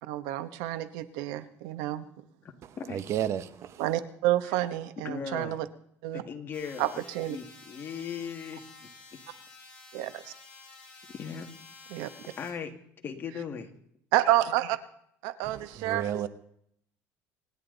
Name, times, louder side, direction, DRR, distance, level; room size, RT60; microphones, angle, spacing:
voice 1, 0.0-2.0 3.8-5.6 6.0-6.2 6.8-6.9 7.1-7.4 9.9-10.3 11.9-12.1 14.1-14.8 15.2-16.3, right 14 dB, 85° right, 1.1 m, -29 dB
voice 2, 2.9-3.8 15.4-16.3, right 10 dB, 50° right, 0.9 m, -32 dB
voice 3, 5.0-5.6 6.2-7.0 7.2-8.6 9.1-9.2 11.1-11.5 12.4-12.7 13.0-13.7, left 6 dB, 35° left, 2.0 m, -38 dB
sound 1, 6.5-12.5, left 4 dB, 20° left, 7.1 m, -51 dB
26.0 x 11.0 x 4.0 m
cardioid pair, 130°, 6 cm